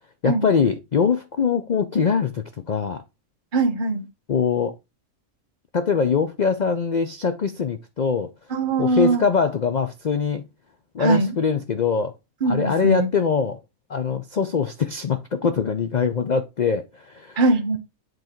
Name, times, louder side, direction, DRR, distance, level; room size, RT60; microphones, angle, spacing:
voice 1, 0.2-3.0 4.3-4.7 5.7-8.3 8.8-10.4 10.9-12.1 12.5-13.6 13.9-17.4, left 6 dB, 75° left, 0.4 m, -23 dB
voice 2, 3.5-4.0 8.5-9.2 11.0-11.3 12.4-13.1 17.4-17.8, right 2 dB, 35° right, 1.3 m, -21 dB
7.8 x 3.9 x 4.5 m
omnidirectional pair, 1.5 m